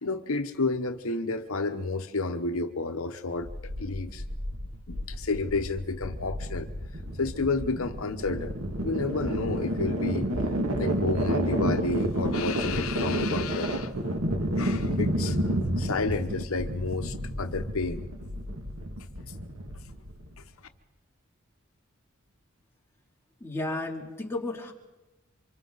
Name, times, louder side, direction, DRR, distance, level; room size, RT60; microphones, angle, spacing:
voice 1, 0.0-4.2 4.9-6.7 7.2-8.5 8.8-10.5 10.8-14.2 14.6-18.0, left 3 dB, 75° left, 8 dB, 1.0 m, -31 dB
sound 1, 3.4-20.4, right 1 dB, 80° right, 2.2 m, -30 dB
voice 2, 23.4-24.7, left 2 dB, 10° left, -1 dB, 2.9 m, -33 dB
28.5 x 25.5 x 4.0 m, 1.1 s
head